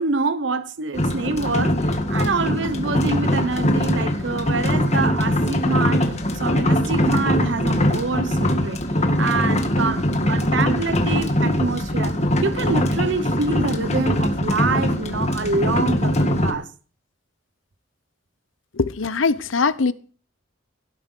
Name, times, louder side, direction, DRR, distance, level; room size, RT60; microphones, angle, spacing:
voice 1, 0.0-8.8 9.2-12.2 12.4-16.7, right 3 dB, 65° right, 0.9 m, -26 dB
sound 1, 0.9-16.5, left 1 dB, 35° left, 1.8 m, -21 dB
voice 2, 18.7-19.9, left 4 dB, 90° left, 0.8 m, -21 dB
17.0 x 8.0 x 6.1 m
head